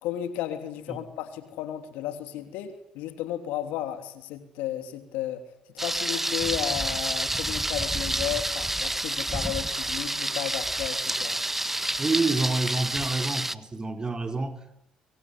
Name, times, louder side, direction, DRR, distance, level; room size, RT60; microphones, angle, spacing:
voice 1, 0.0-5.4 5.7-11.4, left 12 dB, 80° left, 3.2 m, -33 dB
Thunder, 5.8-13.5, right 1 dB, 10° right, 1.4 m, -29 dB
voice 2, 12.0-14.8, right 3 dB, 25° right, 4.3 m, -28 dB
24.5 x 24.5 x 10.0 m
supercardioid pair, 65°, 3 cm